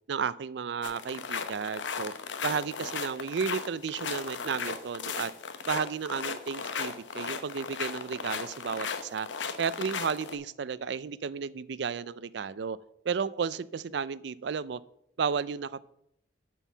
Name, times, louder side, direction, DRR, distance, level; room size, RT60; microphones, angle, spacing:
voice 1, 0.1-2.1 2.4-5.3 5.7-9.3 9.6-12.8 13.0-14.8 15.2-15.8, right 6 dB, 70° right, 18 dB, 0.4 m, -33 dB
sound 1, 0.8-10.4, left 5 dB, 85° left, 0.9 m, -36 dB
8.8 x 4.6 x 7.1 m, 0.77 s
head